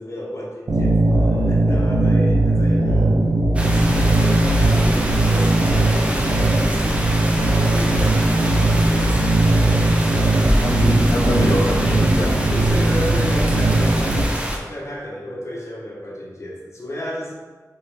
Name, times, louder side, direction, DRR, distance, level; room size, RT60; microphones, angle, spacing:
voice 1, 0.0-3.2 4.1-9.7 10.1-10.3 11.9-17.3, left 1 dB, 45° left, -4 dB, 1.1 m, -32 dB
sound 1, 0.7-14.2, right 2 dB, 65° right, 0.5 m, -18 dB
sound 2, 3.5-14.6, equal, 20° right, 0.6 m, -25 dB
sound 3, 6.1-6.4 8.7-9.2 10.8-11.0 13.3-13.9, equal, 80° right, 1.0 m, -35 dB
voice 2, 10.4-12.5, left 1 dB, 80° left, -5 dB, 0.8 m, -23 dB
4.0 x 3.7 x 3.5 m, 1.3 s
wide cardioid pair, 90°, 7 cm